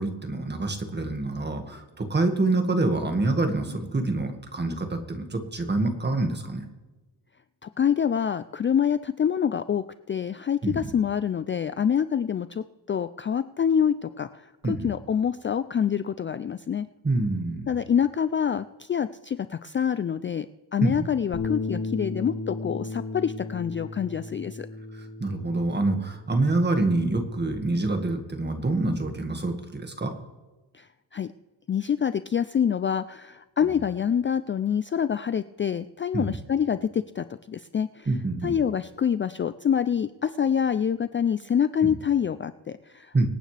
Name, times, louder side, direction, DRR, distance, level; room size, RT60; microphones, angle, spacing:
voice 1, 0.0-6.7 10.6-10.9 14.6-14.9 17.0-17.7 20.8-21.1 24.9-30.1 36.1-36.4 38.1-38.6 41.8-41.9 43.1-43.3, right 2 dB, 25° right, 5 dB, 1.8 m, -26 dB
voice 2, 7.6-16.9 17.7-20.5 20.7-24.7 30.7-31.3 31.7-38.1 38.4-43.3, left 8 dB, 30° left, 12 dB, 0.4 m, -26 dB
Bass guitar, 21.3-27.6, left 3 dB, 55° left, 2.7 m, -35 dB
25.5 x 9.0 x 3.3 m, 1.2 s
wide cardioid pair, 115°, 40 cm